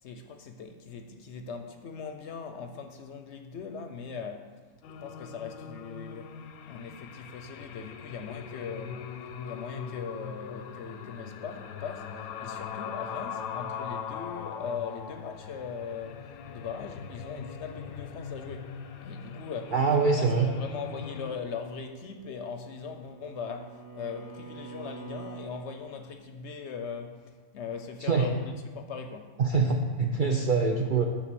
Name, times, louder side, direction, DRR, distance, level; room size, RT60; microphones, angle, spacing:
voice 1, 0.0-4.6 5.0-6.4 6.7-9.1 9.4-18.8 19.0-29.4, left 6 dB, 65° left, 0.8 m, -40 dB
sound 1, 4.8-21.4, left 7 dB, 90° left, 1.1 m, -41 dB
voice 2, 19.7-20.5 28.0-28.3 29.4-31.0, right 4 dB, 65° right, 0.5 m, -24 dB
Bowed string instrument, 22.2-25.6, right 5 dB, 5° right, 1.0 m, -45 dB
9.3 x 3.9 x 6.8 m
omnidirectional pair, 1.5 m